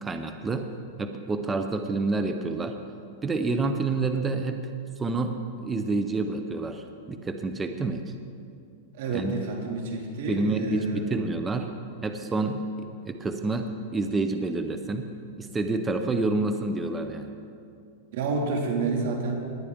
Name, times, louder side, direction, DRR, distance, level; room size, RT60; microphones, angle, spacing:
voice 1, 0.0-0.7 1.0-2.8 3.2-4.6 5.0-8.1 9.1-9.3 10.3-11.7 12.0-12.7 13.0-15.1 15.4-17.3, right 3 dB, 15° right, 7 dB, 0.7 m, -28 dB
voice 2, 8.9-11.1 18.1-19.4, right 3 dB, 65° right, 2 dB, 2.3 m, -29 dB
18.5 x 11.0 x 3.6 m, 2.4 s
hypercardioid pair, 135°, 0 cm